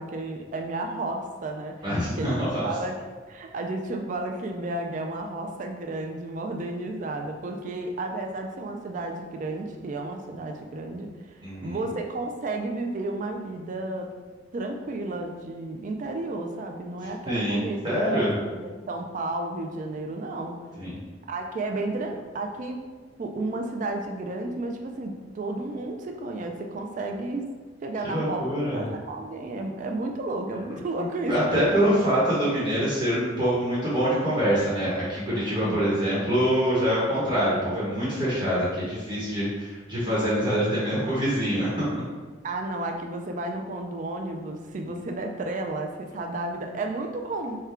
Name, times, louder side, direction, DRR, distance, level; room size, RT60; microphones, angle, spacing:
voice 1, 0.0-1.7 2.1-3.0 3.3-11.3 11.6-14.1 14.5-20.5 21.3-22.8 23.2-27.4 27.8-28.5 28.7-31.7 35.6-35.9 42.4-47.6, right 2 dB, 40° right, 3 dB, 0.3 m, -32 dB
voice 2, 1.8-2.6 11.4-11.8 17.2-18.3 20.8-21.0 28.0-28.8 31.3-42.0, equal, 25° right, -9 dB, 1.0 m, -25 dB
3.6 x 2.2 x 4.3 m, 1.4 s
head